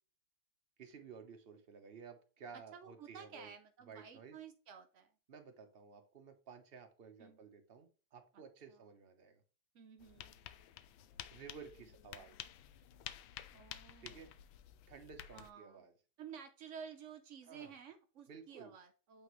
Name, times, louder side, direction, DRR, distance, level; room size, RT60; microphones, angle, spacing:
voice 1, 0.8-3.5 3.9-4.4 5.3-9.4 11.3-12.4 14.0-14.3 14.9-15.9 17.4-17.7 18.3-18.7, right 6 dB, 40° right, 5 dB, 0.9 m, -54 dB
voice 2, 2.5-5.1 7.2-7.4 8.3-8.4 8.7-8.8 9.7-10.3 13.5-14.3 15.3-15.8 16.2-19.2, right 7 dB, 80° right, 7 dB, 0.6 m, -53 dB
sound 1, 10.0-15.5, left 11 dB, 85° left, 1.3 m, -52 dB
8.4 x 3.8 x 3.1 m, 0.37 s
omnidirectional pair, 2.1 m